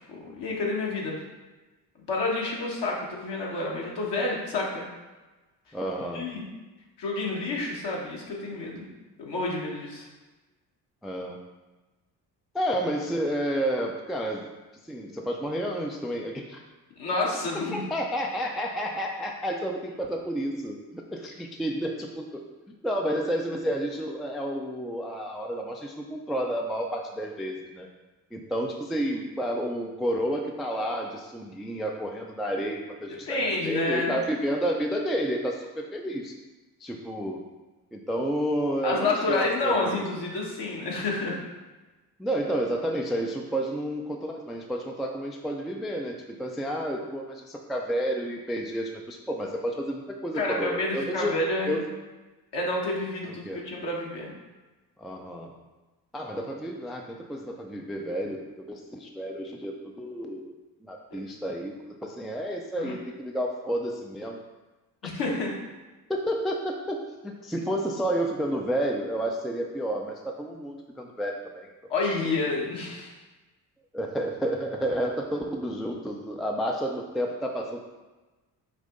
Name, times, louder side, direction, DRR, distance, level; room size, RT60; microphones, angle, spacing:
voice 1, 0.1-1.2 2.1-4.8 6.1-6.5 7.0-8.8 9.2-10.1 17.0-17.8 33.3-34.1 38.8-41.4 50.3-51.8 52.5-54.3 61.1-61.2 62.8-62.9 65.0-65.5 71.9-73.1, left 2 dB, 55° left, -2 dB, 1.4 m, -29 dB
voice 2, 5.7-6.3 11.0-11.4 12.5-14.5 14.9-16.6 17.7-22.4 22.8-27.9 28.3-36.3 36.8-37.4 37.9-40.0 42.2-51.3 51.7-51.9 53.3-53.6 55.0-55.5 56.1-60.5 60.8-64.4 65.0-65.1 66.1-71.7 73.9-77.9, equal, ahead, 2 dB, 0.3 m, -30 dB
5.3 x 2.7 x 3.8 m, 1.2 s
hypercardioid pair, 45°, 50 cm